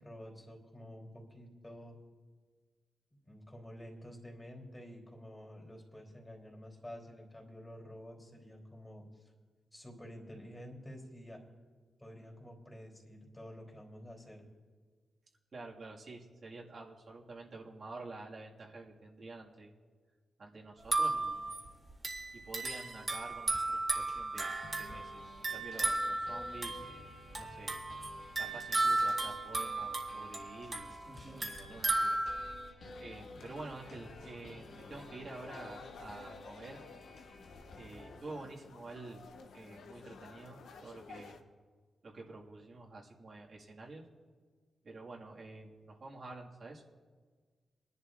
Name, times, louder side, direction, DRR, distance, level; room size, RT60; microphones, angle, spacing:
voice 1, 0.0-2.0 3.2-9.3 9.7-11.4 12.0-14.5, equal, 15° left, -1 dB, 3.3 m, -50 dB
voice 2, 15.5-19.7 20.4-21.5 22.4-27.8 28.4-30.9 31.4-32.2 33.0-36.8 37.8-39.2 39.5-41.4 42.0-44.0 44.8-46.8, right 3 dB, 55° right, -3 dB, 1.9 m, -49 dB
sound 1, 20.8-32.7, right 2 dB, 35° right, 2.0 m, -35 dB
sound 2, 23.5-23.6 24.1-38.2, left 2 dB, 65° left, 1.5 m, -53 dB
sound 3, 32.8-41.4, left 4 dB, 90° left, 0.9 m, -53 dB
23.0 x 11.0 x 2.5 m, 1.5 s
cardioid pair, 80°, 0 cm